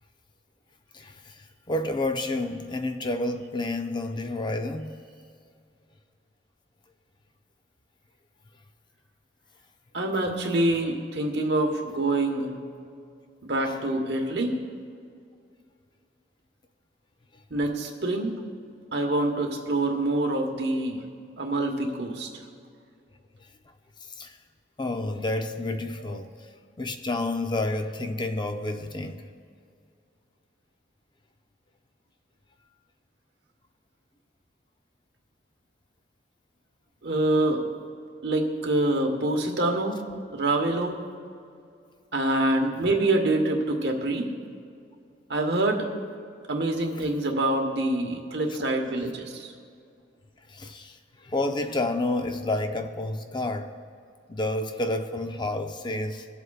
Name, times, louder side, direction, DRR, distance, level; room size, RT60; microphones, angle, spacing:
voice 1, 0.9-5.0 13.6-13.8 17.3-17.4 23.4-23.5 24.1-24.4 24.8-26.5 26.8-29.2 47.0-47.1 50.5-53.8 54.3-56.3, left 2 dB, 25° left, 7 dB, 0.4 m, -30 dB
voice 2, 9.9-12.5 13.4-14.6 17.5-18.4 18.9-21.0 21.4-22.3 37.0-37.6 38.2-40.0 40.3-41.0 42.1-44.3 45.3-45.9 46.5-49.5, right 2 dB, 65° right, 2 dB, 1.2 m, -26 dB
22.0 x 8.0 x 2.4 m, 2.3 s
head